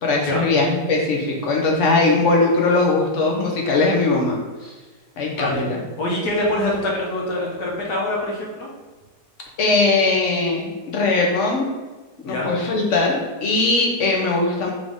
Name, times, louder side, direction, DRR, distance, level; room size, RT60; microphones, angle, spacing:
voice 1, 0.0-4.7 5.2-5.8 9.6-11.7 12.2-14.7, left 3 dB, 55° left, -1 dB, 1.1 m, -20 dB
voice 2, 5.3-5.7 6.0-8.7 12.2-12.5, left 1 dB, 75° left, -3 dB, 1.6 m, -24 dB
3.7 x 3.7 x 3.6 m, 1.2 s
omnidirectional pair, 1.8 m